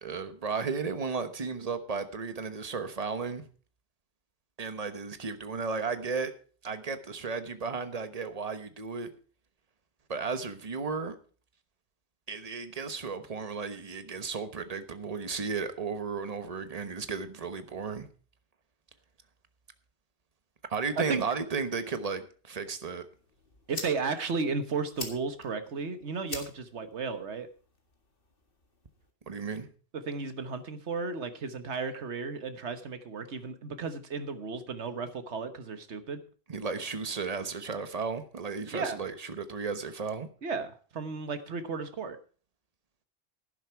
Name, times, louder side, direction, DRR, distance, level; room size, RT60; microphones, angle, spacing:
voice 1, 0.0-3.5 4.6-6.3 6.6-9.1 10.1-11.2 12.3-18.1 20.7-23.1 29.3-29.7 36.5-40.3, right 5 dB, 35° right, 1.2 m, -34 dB
sound 1, 23.1-29.1, left 3 dB, 55° left, 2.2 m, -46 dB
voice 2, 23.7-27.5 29.9-36.2 38.7-39.0 40.4-42.2, right 4 dB, 90° right, 1.5 m, -34 dB
11.5 x 10.5 x 4.6 m
omnidirectional pair, 1.1 m